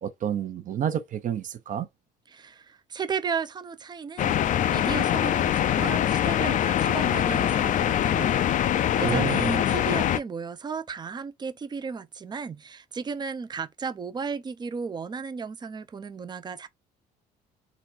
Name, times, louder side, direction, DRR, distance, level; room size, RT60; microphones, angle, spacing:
voice 1, 0.0-1.9 9.0-9.5, right 9 dB, 50° right, 0.8 m, -29 dB
voice 2, 2.3-4.4 4.7-8.5 9.0-16.7, right 5 dB, 25° right, 0.6 m, -34 dB
sound 1, 4.2-10.2, left 10 dB, 50° left, 0.5 m, -23 dB
4.1 x 2.3 x 4.4 m
cardioid pair, 110°, 17 cm